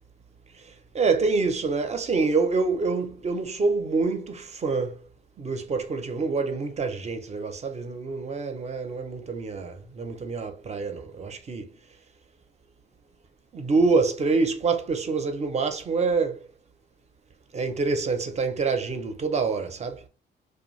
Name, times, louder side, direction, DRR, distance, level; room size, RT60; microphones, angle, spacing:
voice 1, 0.5-5.1 5.4-11.7 13.5-16.5 17.5-20.0, right 4 dB, 35° right, 0.6 m, -26 dB
2.6 x 2.2 x 3.1 m
cardioid pair, 90°, 20 cm